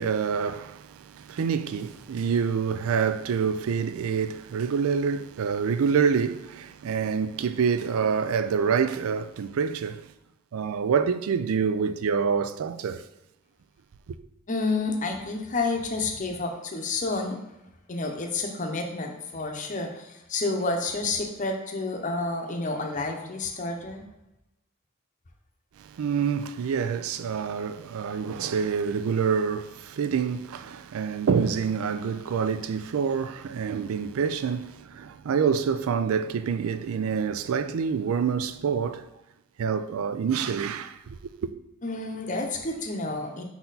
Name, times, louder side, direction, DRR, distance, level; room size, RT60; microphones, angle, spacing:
voice 1, 0.0-10.1 10.5-13.1 14.1-14.2 25.8-39.1 39.6-41.5, right 6 dB, 80° right, 0.4 m, -27 dB
voice 2, 14.5-17.4 17.9-24.0 41.8-43.4, left 3 dB, 35° left, 0.7 m, -30 dB
5.6 x 4.2 x 4.0 m
head